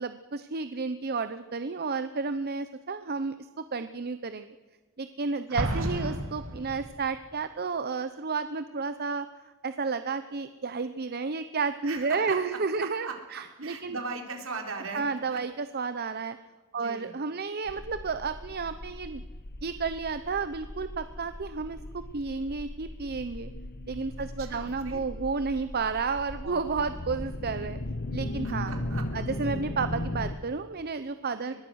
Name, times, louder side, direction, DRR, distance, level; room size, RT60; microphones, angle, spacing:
voice 1, 0.0-3.3 3.7-4.5 5.0-9.3 9.6-14.0 14.9-16.4 16.7-19.2 19.6-21.8 22.1-23.5 23.9-27.8 28.1-28.7 29.1-31.5, right 4 dB, 45° right, 11 dB, 0.8 m, -31 dB
Explosion, 5.6-7.2, right 1 dB, 85° right, 3.3 m, -32 dB
voice 2, 11.8-15.4 16.1-16.2 16.7-17.1 24.4-25.1 26.4-26.9 28.4-29.1 31.4-31.5, right 3 dB, 65° right, 3 dB, 4.2 m, -39 dB
sound 1, 17.7-30.4, left 1 dB, 50° left, 1.3 m, -37 dB
24.0 x 21.5 x 6.4 m, 1.3 s
head